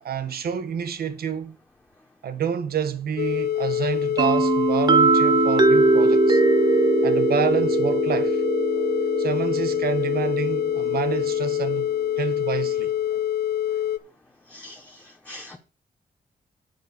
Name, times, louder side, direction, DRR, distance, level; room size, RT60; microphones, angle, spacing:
voice 1, 0.0-1.6 2.2-6.4 7.0-8.4 9.2-11.9 12.2-12.9, right 7 dB, 75° right, 1.1 m, -28 dB
sound 1, 3.2-14.0, left 11 dB, 85° left, 0.6 m, -25 dB
sound 2, 4.2-11.8, right 4 dB, 25° right, 0.8 m, -22 dB
voice 2, 14.5-15.6, left 1 dB, 10° left, 0.9 m, -43 dB
8.1 x 5.2 x 6.7 m
wide cardioid pair, 180°, 16 cm